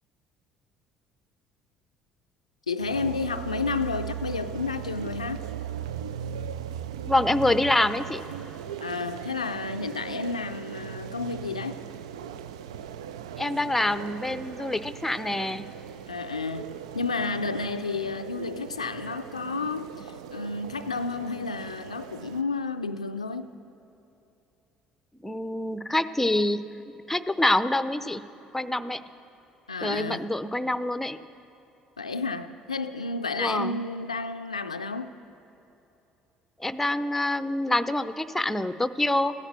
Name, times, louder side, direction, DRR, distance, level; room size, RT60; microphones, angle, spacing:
voice 1, 2.7-5.4 8.8-11.8 16.1-23.5 29.7-30.3 32.0-35.2, left 4 dB, 85° left, 8 dB, 0.4 m, -31 dB
sound 1, 2.8-22.4, right 9 dB, 75° right, 0.4 m, -38 dB
voice 2, 7.0-8.2 13.4-15.7 25.2-28.2 28.5-29.0 29.8-31.2 33.4-33.8 36.6-39.3, left 1 dB, 5° left, 13 dB, 0.6 m, -26 dB
15.0 x 11.0 x 7.5 m, 2.9 s
figure-of-eight pair, 55°, 3 cm